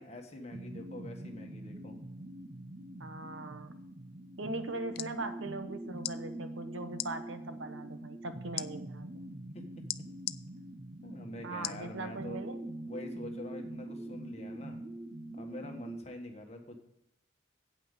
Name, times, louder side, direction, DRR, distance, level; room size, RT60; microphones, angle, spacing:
voice 1, 0.0-2.0 9.5-9.8 11.0-12.4 12.9-14.8 15.3-16.8, left 1 dB, 30° left, 3 dB, 1.5 m, -45 dB
sound 1, 0.5-16.0, right 1 dB, 30° right, 0.9 m, -44 dB
voice 2, 3.0-3.7 4.4-9.2 11.4-12.6, right 2 dB, 70° right, 9 dB, 1.0 m, -40 dB
sound 2, 4.7-5.1 6.0-6.2 6.9-7.1 8.6-8.7 9.9-10.4 11.6-11.8 12.4-12.5, left 15 dB, 50° left, 0.3 m, -37 dB
8.6 x 5.8 x 8.1 m, 0.84 s
head